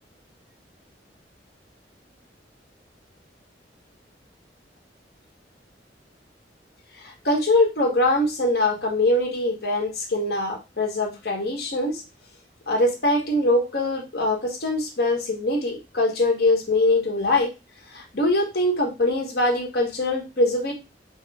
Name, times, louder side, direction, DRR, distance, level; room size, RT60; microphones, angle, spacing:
voice 1, 7.0-12.0 12.7-17.5 17.9-20.7, left 2 dB, 65° left, 1 dB, 1.4 m, -23 dB
5.2 x 2.1 x 3.5 m, 0.25 s
head